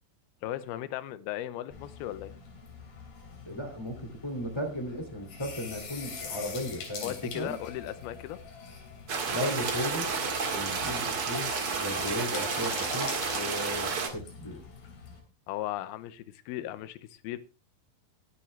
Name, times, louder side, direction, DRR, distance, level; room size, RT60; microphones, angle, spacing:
voice 1, 0.4-2.3 7.0-8.4 15.5-17.4, left 13 dB, 75° left, 13 dB, 2.4 m, -36 dB
sound 1, 1.7-15.2, left 5 dB, 60° left, 4.8 m, -44 dB
voice 2, 3.4-7.6 9.3-10.1 10.5-14.6, equal, 10° left, 4 dB, 1.2 m, -36 dB
sound 2, 9.1-14.1, right 5 dB, 45° right, 2.1 m, -31 dB
22.5 x 7.5 x 3.3 m, 0.29 s
omnidirectional pair, 5.1 m